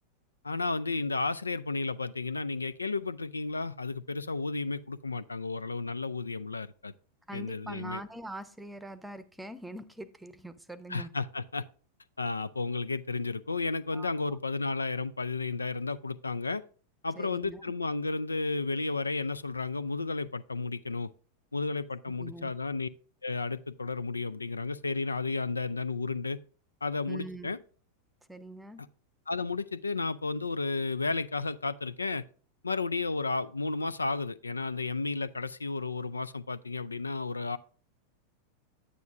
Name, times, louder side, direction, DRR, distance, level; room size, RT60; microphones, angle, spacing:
voice 1, 0.4-6.9 7.3-8.0 10.9-11.6 12.2-16.6 17.0-21.1 21.5-22.9 23.2-26.4 26.8-27.6 29.3-32.2 32.6-37.6, left 3 dB, 80° left, 0.3 m, -33 dB
voice 2, 7.3-11.1 13.9-14.1 17.2-17.6 22.1-22.5 27.1-27.5 28.3-28.8, right 1 dB, 5° right, 0.8 m, -43 dB
9.8 x 9.2 x 2.5 m
figure-of-eight pair, 90°, 0 cm